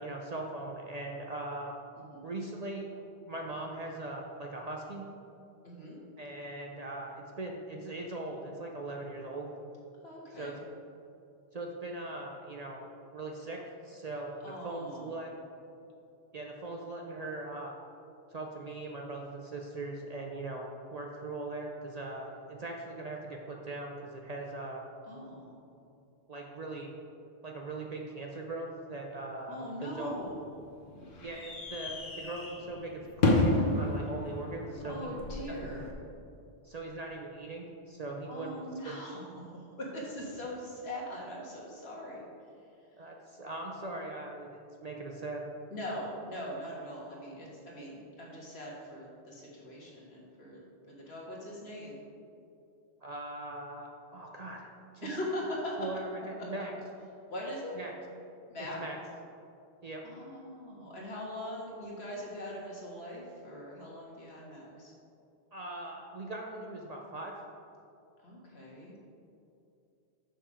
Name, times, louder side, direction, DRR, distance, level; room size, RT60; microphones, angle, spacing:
voice 1, 0.0-1.8 2.2-5.1 6.2-9.5 10.3-10.5 11.5-15.3 16.3-17.7 18.3-24.8 26.3-26.9 27.4-30.2 31.2-35.1 35.5-35.6 36.6-38.6 38.9-39.0 43.0-45.5 53.0-54.7 54.9-55.1 55.8-56.7 57.8-57.9 58.6-59.0 59.8-60.0 65.5-67.3, right 2 dB, 45° right, 0 dB, 0.6 m, -40 dB
voice 2, 5.6-6.0 10.0-10.6 14.4-15.4 25.1-25.7 29.5-30.4 34.8-35.9 38.3-39.5 39.8-42.2 45.7-50.6 50.9-52.0 55.0-55.9 57.3-57.8 58.5-58.8 60.0-64.9 68.2-68.9, equal, 70° left, -4 dB, 1.8 m, -41 dB
sound 1, 29.9-35.9, left 2 dB, 50° left, 1.1 m, -32 dB
6.8 x 6.0 x 4.9 m, 2.6 s
omnidirectional pair, 1.1 m